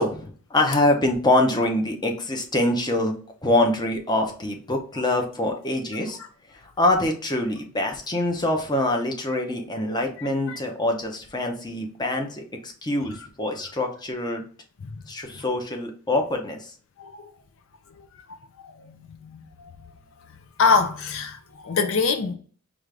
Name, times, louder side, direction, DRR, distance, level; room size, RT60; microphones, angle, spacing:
voice 1, 0.0-3.1 3.4-6.2 6.6-14.4 15.1-16.7, left 1 dB, 20° left, 0.7 m, -24 dB
voice 2, 17.0-17.3 18.6-19.9 20.6-22.3, left 4 dB, 60° left, 0.5 m, -25 dB
5.0 x 2.4 x 3.3 m
head